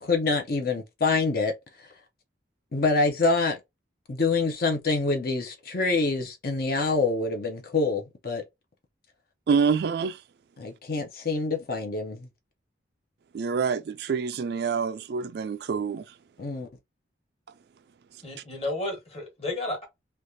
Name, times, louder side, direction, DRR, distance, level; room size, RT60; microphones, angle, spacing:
voice 1, 0.0-1.5 2.7-3.6 4.1-8.4 10.6-12.3 16.4-16.7, left 3 dB, 50° left, 0.7 m, -26 dB
voice 2, 9.5-10.2 13.3-16.0, right 5 dB, 60° right, 0.3 m, -26 dB
voice 3, 18.2-19.9, left 2 dB, 35° left, 1.3 m, -32 dB
3.3 x 2.4 x 2.7 m
head